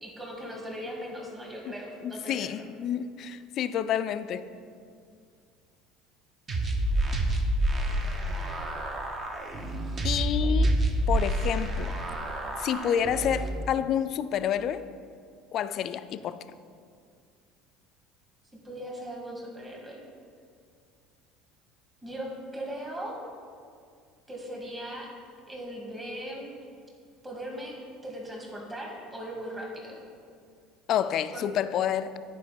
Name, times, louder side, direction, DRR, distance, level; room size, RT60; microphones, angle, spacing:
voice 1, 0.0-2.6 18.5-20.0 22.0-23.2 24.3-25.1 25.5-26.5 27.2-27.8 28.0-30.0 31.3-31.4, equal, 15° right, -2 dB, 1.9 m, -39 dB
voice 2, 2.0-4.5 10.0-10.7 11.1-11.9 12.6-14.9 15.5-16.4 30.9-32.2, left 9 dB, 50° left, 13 dB, 0.4 m, -29 dB
sound 1, 6.5-13.5, right 1 dB, 35° right, 1.1 m, -28 dB
9.6 x 4.7 x 5.2 m, 2.2 s
supercardioid pair, 105°, 0 cm